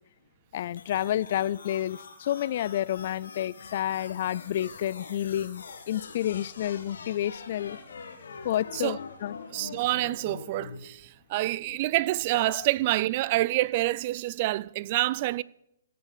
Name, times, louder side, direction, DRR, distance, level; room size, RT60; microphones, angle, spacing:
voice 1, 0.5-7.8 8.4-9.4 12.3-12.6, left 12 dB, 50° left, 0.4 m, -30 dB
sound 1, 0.8-10.8, left 5 dB, 75° left, 2.2 m, -44 dB
voice 2, 9.5-15.4, right 17 dB, 40° right, 0.4 m, -27 dB
17.0 x 6.7 x 6.6 m
hypercardioid pair, 145°, 0 cm